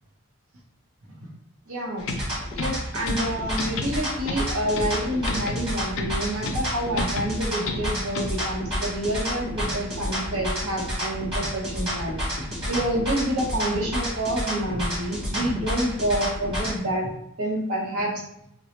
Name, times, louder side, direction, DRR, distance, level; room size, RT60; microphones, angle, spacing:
voice 1, 1.7-2.1 2.6-17.1 17.4-18.2, right 1 dB, 80° right, -1 dB, 0.9 m, -28 dB
sound 1, 2.0-8.6, left 2 dB, 65° left, 0.4 m, -33 dB
sound 2, 2.0-16.8, equal, 25° right, 1.4 m, -30 dB
4.4 x 2.0 x 3.1 m, 0.79 s
head